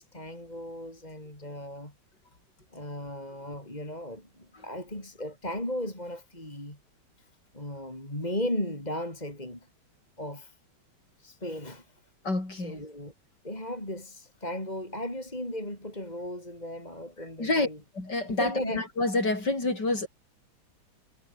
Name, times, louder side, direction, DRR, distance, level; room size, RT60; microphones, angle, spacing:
voice 1, 0.0-1.9 2.7-6.8 7.5-9.7 10.2-10.5 11.2-11.9 12.5-13.1 13.4-17.8 18.4-18.8, left 1 dB, 20° left, 6.7 m, -36 dB
voice 2, 12.2-12.8 17.4-17.7 17.9-20.1, left 2 dB, 60° left, 6.8 m, -28 dB
omnidirectional pair, 2.1 m